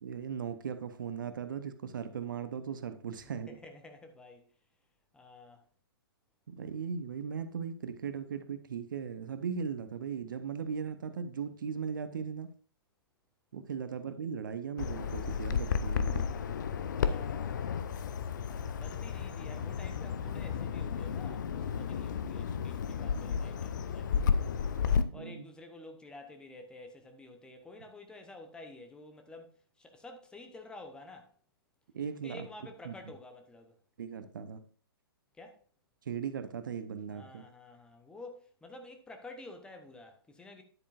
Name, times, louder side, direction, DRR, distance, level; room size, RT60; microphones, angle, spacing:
voice 1, 0.0-3.6 6.5-12.5 13.5-16.2 25.1-25.4 31.9-32.5 32.8-32.9 34.0-34.6 36.1-37.4, right 6 dB, 55° right, 0.8 m, -38 dB
voice 2, 3.1-4.5 5.1-5.6 15.9-18.3 18.8-24.4 25.1-31.3 32.2-33.8 35.3-35.6 37.1-40.6, left 2 dB, 5° left, 0.9 m, -51 dB
Bird vocalization bird call bird song, 14.8-25.0, left 6 dB, 50° left, 0.7 m, -33 dB
10.0 x 8.4 x 2.5 m
figure-of-eight pair, 120°, 13 cm